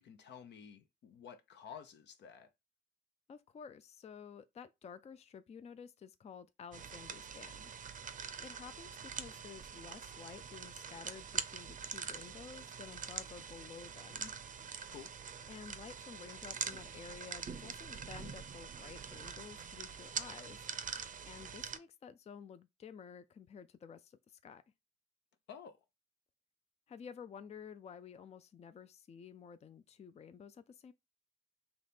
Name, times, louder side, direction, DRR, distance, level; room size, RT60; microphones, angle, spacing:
voice 1, 0.0-2.5 14.9-15.1 25.5-25.8, left 7 dB, 75° left, 0.7 m, -52 dB
voice 2, 3.3-7.8 8.4-14.3 15.5-20.7 21.3-24.6 26.9-30.9, left 6 dB, 35° left, 0.4 m, -52 dB
sound 1, 6.7-21.8, right 6 dB, 50° right, 0.6 m, -44 dB
4.0 x 2.9 x 3.4 m
cardioid pair, 85°, 18 cm